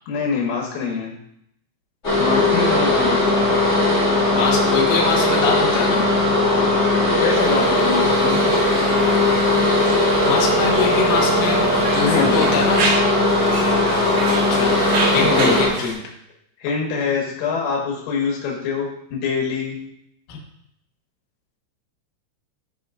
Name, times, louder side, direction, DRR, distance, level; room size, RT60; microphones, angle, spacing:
voice 1, 0.1-1.1 2.2-3.5 7.2-8.4 12.0-12.5 15.1-15.6 16.6-19.8, left 5 dB, 90° left, -2 dB, 4.1 m, -25 dB
sound 1, 2.0-15.7, left 1 dB, 20° left, 2.2 m, -18 dB
voice 2, 4.3-6.0 10.2-12.9 14.5-14.8 15.1-16.0 20.3-20.4, left 5 dB, 60° left, -2 dB, 2.5 m, -23 dB
Conversation, 7.3-15.9, right 3 dB, 80° right, 3.8 m, -30 dB
14.5 x 5.0 x 2.5 m, 0.75 s
omnidirectional pair, 5.4 m